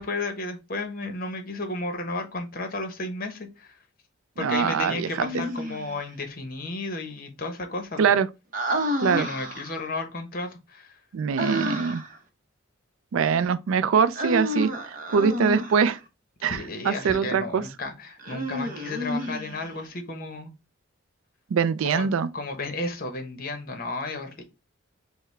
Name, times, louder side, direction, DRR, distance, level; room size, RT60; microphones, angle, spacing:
voice 1, 0.0-3.7 4.4-8.1 9.1-10.9 16.4-20.5 21.8-22.1 22.3-24.4, left 2 dB, 45° left, 0.9 m, -33 dB
voice 2, 4.4-5.1 8.0-8.3 9.0-9.3 11.1-12.0 13.1-16.0 16.4-16.6 16.8-17.6 21.5-22.3, right 6 dB, 75° right, 0.4 m, -23 dB
Human voice, 5.1-6.0 8.5-9.9 11.4-12.2 14.1-15.9 18.2-19.8, equal, 40° right, 0.7 m, -30 dB
5.6 x 2.1 x 3.2 m
head